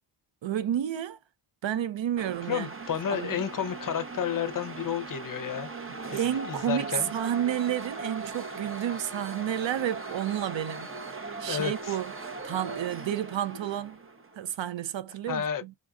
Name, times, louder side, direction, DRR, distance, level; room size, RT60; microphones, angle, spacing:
voice 1, 0.4-1.2 1.6-2.7 3.1-3.4 6.1-10.9 11.4-12.1 12.4-14.0 14.4-15.7, right 10 dB, 65° right, 0.6 m, -31 dB
sound 1, 2.2-14.5, right 3 dB, 25° right, 0.7 m, -39 dB
voice 2, 2.5-5.7 6.1-7.1 11.5-12.0 15.3-15.8, left 8 dB, 40° left, 0.6 m, -31 dB
5.2 x 2.4 x 2.3 m
cardioid pair, 75°, 49 cm